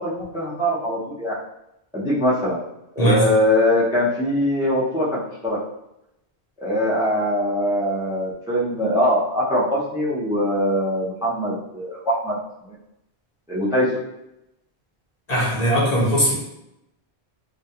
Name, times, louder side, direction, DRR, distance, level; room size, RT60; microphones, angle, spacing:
voice 1, 0.0-1.3 1.9-2.6 2.9-5.6 6.6-12.4 12.6-12.7 13.5-13.9, equal, 5° right, -8 dB, 0.3 m, -22 dB
voice 2, 15.3-16.3, equal, 45° left, -5 dB, 0.7 m, -19 dB
2.2 x 2.1 x 2.8 m, 0.86 s
omnidirectional pair, 1.1 m